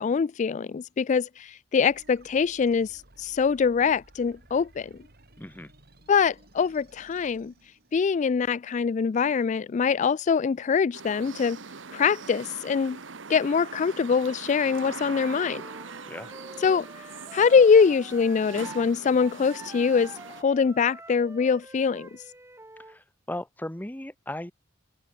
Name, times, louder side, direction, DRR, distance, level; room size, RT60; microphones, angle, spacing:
voice 1, 0.0-4.9 6.1-7.5 7.9-11.6 11.9-13.0 13.3-15.6 16.6-16.9 17.3-22.1, left 6 dB, 40° left, 0.3 m, -23 dB
sound 1, 1.9-8.3, right 1 dB, 55° right, 6.6 m, -56 dB
voice 2, 5.4-5.7 16.1-16.3 22.9-24.5, left 1 dB, 10° left, 0.9 m, -37 dB
sound 2, 10.9-20.4, right 4 dB, 70° right, 1.3 m, -42 dB
Wind instrument woodwind instrument, 15.3-18.9 19.2-23.0, right 2 dB, 15° right, 5.0 m, -46 dB
head